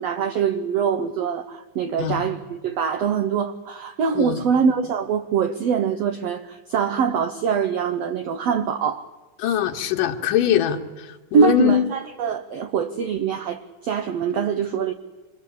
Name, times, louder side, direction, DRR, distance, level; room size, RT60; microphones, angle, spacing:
voice 1, 0.0-9.1 11.3-14.9, right 7 dB, 65° right, 6 dB, 1.7 m, -23 dB
voice 2, 9.4-10.8 11.3-11.8, left 11 dB, 80° left, 5 dB, 2.9 m, -21 dB
26.5 x 21.0 x 8.5 m, 1.2 s
omnidirectional pair, 3.8 m